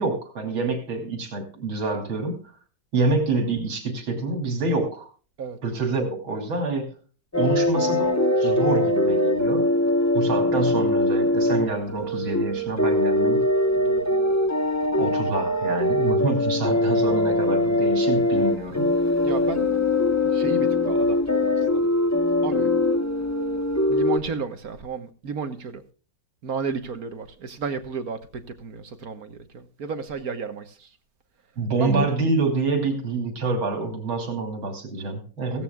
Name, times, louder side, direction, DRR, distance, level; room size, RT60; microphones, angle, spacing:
voice 1, 0.0-2.4 2.9-5.1 5.6-6.9 7.4-9.7 10.1-13.5 14.9-18.9 31.6-35.6, right 3 dB, 75° right, 3.6 m, -27 dB
sound 1, 7.3-24.2, left 1 dB, 15° left, 0.5 m, -22 dB
voice 2, 13.8-14.2 19.2-19.7 20.2-21.8 22.4-22.7 23.9-25.8 26.4-30.9 31.8-32.1 35.5-35.6, right 5 dB, 50° right, 1.6 m, -33 dB
16.5 x 16.0 x 2.3 m
omnidirectional pair, 2.3 m